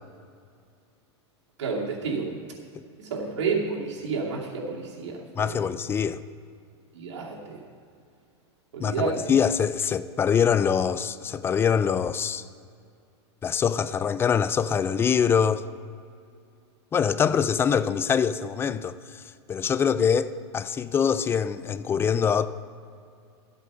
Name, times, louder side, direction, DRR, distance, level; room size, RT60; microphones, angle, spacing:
voice 1, 1.6-2.3 3.0-5.6 6.9-7.6 8.7-9.3, right 5 dB, 80° right, 2.6 m, -30 dB
voice 2, 5.4-6.2 8.8-12.4 13.4-15.6 16.9-19.2 19.5-22.5, left 7 dB, 15° left, 0.3 m, -24 dB
13.0 x 8.2 x 5.5 m
hypercardioid pair, 125°, 15 cm